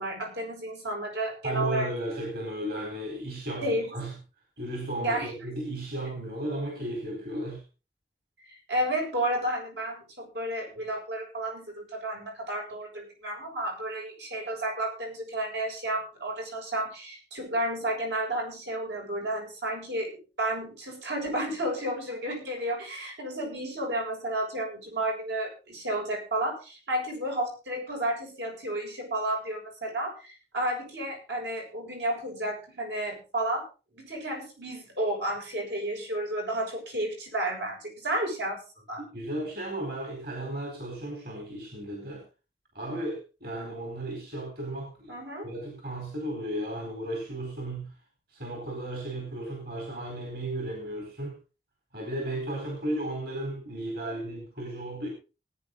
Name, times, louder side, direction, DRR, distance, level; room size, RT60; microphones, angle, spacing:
voice 1, 0.0-1.9 3.6-3.9 5.0-5.3 8.5-33.7 33.9-38.6 38.9-39.0 45.1-45.5, right 1 dB, 90° right, 1 dB, 7.3 m, -32 dB
voice 2, 1.4-4.1 4.6-7.6 39.1-42.2 42.7-47.9 48.3-51.4 51.9-55.1, right 1 dB, 60° right, 1 dB, 4.3 m, -34 dB
20.0 x 9.4 x 4.0 m, 0.33 s
head